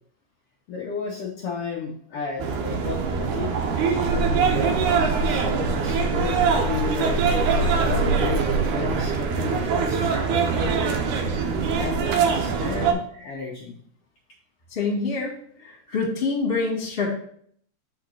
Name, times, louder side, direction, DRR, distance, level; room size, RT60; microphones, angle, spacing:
voice 1, 0.7-3.5 3.9-7.3 7.5-10.9 11.7-13.8, left 5 dB, 80° left, -2 dB, 1.3 m, -33 dB
sound 1, 2.4-12.9, right 5 dB, 85° right, 2.3 m, -23 dB
voice 2, 14.7-17.1, left 4 dB, 25° left, -2 dB, 1.2 m, -26 dB
5.0 x 4.7 x 4.7 m, 0.64 s
omnidirectional pair, 3.6 m